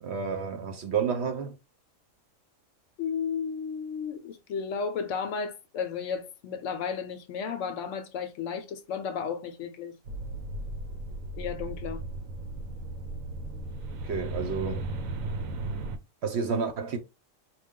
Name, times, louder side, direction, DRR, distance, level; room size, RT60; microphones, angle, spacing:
voice 1, 0.0-1.5 14.0-14.9 16.2-17.0, right 6 dB, 60° right, 0.9 m, -30 dB
voice 2, 3.0-10.0 11.4-12.0, left 6 dB, 70° left, 0.9 m, -33 dB
sound 1, 10.1-16.0, right 2 dB, 80° right, 1.1 m, -36 dB
4.7 x 2.3 x 3.6 m
omnidirectional pair, 1.4 m